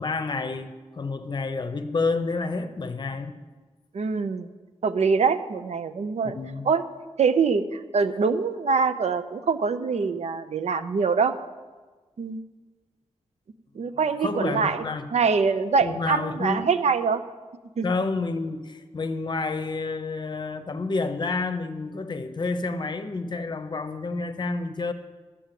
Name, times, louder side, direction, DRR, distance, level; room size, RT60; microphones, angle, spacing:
voice 1, 0.0-3.3 6.2-6.7 13.8-15.1 15.8-16.7 17.8-24.9, left 3 dB, 40° left, 9 dB, 0.7 m, -29 dB
voice 2, 3.9-4.5 4.8-6.4 6.7-6.8 7.2-11.3 12.2-12.4 13.7-14.8 15.1-17.2 17.8-17.9, right 5 dB, 70° right, 10 dB, 0.7 m, -24 dB
11.5 x 8.5 x 7.5 m, 1.3 s
wide cardioid pair, 175°, 12 cm